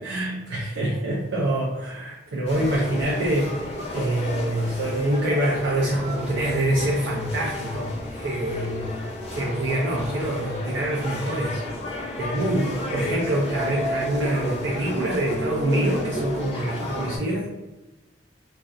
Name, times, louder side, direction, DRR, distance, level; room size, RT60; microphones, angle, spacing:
voice 1, 0.0-3.5 3.9-8.9 9.4-11.6 12.2-17.5, right 1 dB, 90° right, -3 dB, 0.4 m, -25 dB
sound 1, 2.5-17.2, left 1 dB, 35° left, 0.7 m, -32 dB
2.5 x 2.1 x 2.3 m, 1.0 s
head